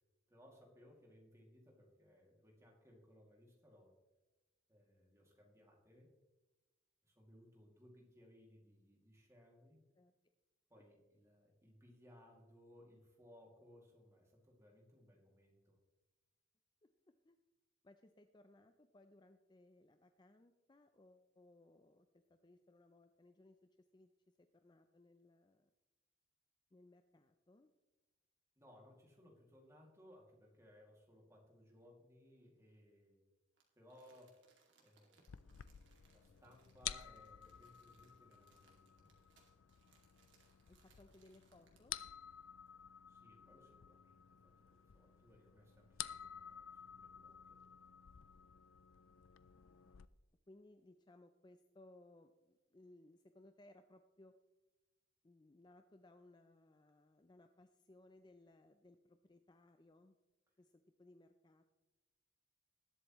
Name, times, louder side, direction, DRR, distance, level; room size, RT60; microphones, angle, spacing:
voice 1, 0.3-3.9 4.7-6.2 7.0-9.8 10.7-15.8 28.6-33.3 33.8-34.4 34.8-35.3 36.1-39.1 43.1-47.6, left 1 dB, 15° right, -1 dB, 2.3 m, -64 dB
voice 2, 17.8-24.1 24.6-25.7 26.7-27.7 40.7-42.0 49.0-49.9 50.5-54.3 55.2-60.2 60.6-61.6, left 2 dB, 20° left, 7 dB, 0.4 m, -64 dB
Crumpling crinkling, 33.6-42.2 42.7-42.8, right 4 dB, 60° right, 2.4 m, -74 dB
sound 1, 35.3-50.1, left 11 dB, 80° left, 0.5 m, -52 dB
20.0 x 8.1 x 3.1 m, 1.1 s
head